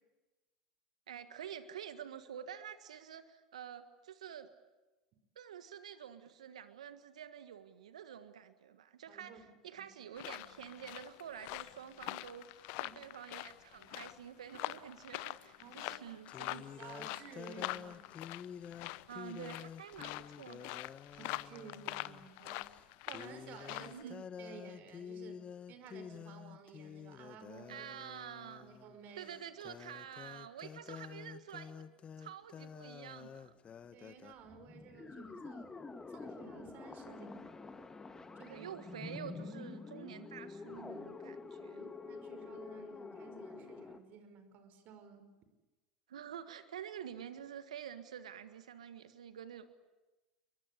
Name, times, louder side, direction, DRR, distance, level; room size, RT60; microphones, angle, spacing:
voice 1, 1.1-4.5 5.3-16.7 18.9-20.8 23.8-24.2 27.7-28.7 29.2-31.8 32.2-33.5 37.1-37.2 38.5-41.9 46.1-49.7, right 9 dB, 80° right, 11 dB, 1.6 m, -48 dB
voice 2, 9.1-9.8 12.8-13.0 15.6-16.1 16.8-18.0 21.1-22.7 23.1-24.1 24.4-27.9 28.6-29.4 33.9-35.8 36.1-37.4 38.4-38.8 41.6-45.3, right 6 dB, 50° right, 9 dB, 5.3 m, -54 dB
sound 1, 10.2-24.0, left 20 dB, 60° left, 0.9 m, -45 dB
sound 2, 15.4-15.5 16.3-22.3 22.6-22.8 23.1-34.3, left 7 dB, 35° left, 1.3 m, -50 dB
sound 3, 34.3-44.0, left 4 dB, 15° left, 2.1 m, -48 dB
29.5 x 23.0 x 8.3 m, 1.1 s
hypercardioid pair, 80°, 4 cm